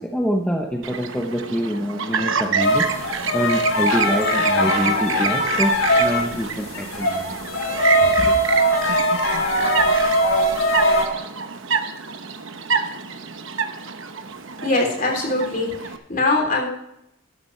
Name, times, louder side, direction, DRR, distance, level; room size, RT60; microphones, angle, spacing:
voice 1, 0.0-7.4 8.2-8.3, equal, 5° left, 1 dB, 0.9 m, -26 dB
Chirp tweet, 0.8-16.0, right 6 dB, 65° right, 1.0 m, -28 dB
sound 1, 2.6-6.4 6.7-11.0, equal, 80° left, 3.2 m, -20 dB
voice 2, 14.6-16.7, left 2 dB, 40° left, 1 dB, 3.3 m, -22 dB
12.5 x 12.0 x 3.3 m, 0.82 s
head